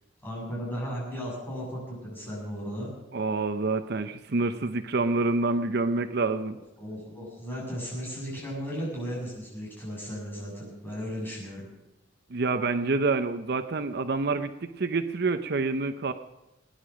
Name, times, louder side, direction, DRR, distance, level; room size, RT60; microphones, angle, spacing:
voice 1, 0.2-2.9 6.5-11.7, equal, 10° left, -5 dB, 7.8 m, -36 dB
voice 2, 3.1-6.6 12.3-16.1, right 3 dB, 55° right, 9 dB, 0.7 m, -27 dB
20.5 x 10.5 x 6.3 m, 0.94 s
head